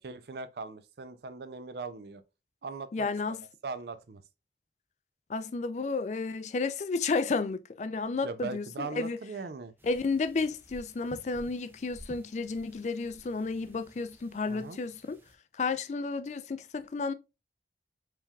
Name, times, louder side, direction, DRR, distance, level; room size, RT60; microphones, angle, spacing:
voice 1, 0.0-2.2 2.6-3.4 3.6-4.2 8.2-9.7 14.5-14.8, right 4 dB, 65° right, 0.5 m, -40 dB
voice 2, 2.9-3.4 5.3-9.2 9.8-15.2 15.5-17.1, left 4 dB, 40° left, 0.3 m, -32 dB
sound 1, 9.8-15.4, equal, 10° right, 0.6 m, -53 dB
4.5 x 3.5 x 2.3 m
head